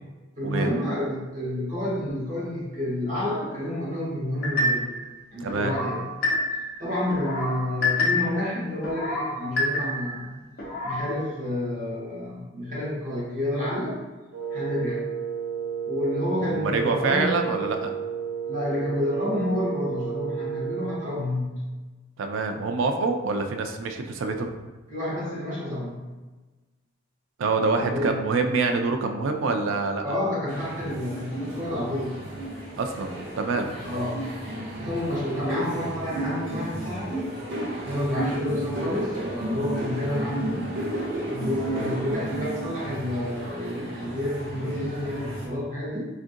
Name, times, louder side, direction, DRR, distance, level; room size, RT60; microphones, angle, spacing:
voice 1, 0.4-4.9 5.3-6.0 6.5-10.4 10.8-14.0 14.5-15.0 15.8-17.3 18.5-21.6 24.9-26.1 27.7-28.2 30.0-32.2 33.8-34.3 34.8-37.3 37.8-40.7 41.2-46.0, left 1 dB, 40° right, -8 dB, 1.3 m, -29 dB
sound 1, 4.4-5.0 5.5-6.7 7.1-8.4 8.8-10.2 10.6-11.1, left 2 dB, 50° left, 0.8 m, -27 dB
voice 2, 5.4-5.7 16.4-17.9 22.2-24.5 27.4-30.2 32.8-33.7, right 3 dB, 70° right, 5 dB, 0.4 m, -26 dB
Wind instrument woodwind instrument, 14.3-21.1, right 7 dB, 85° right, 0.9 m, -32 dB
sound 2, 30.5-45.5, right 1 dB, 55° right, 0.9 m, -33 dB
3.6 x 2.5 x 2.5 m, 1.2 s
head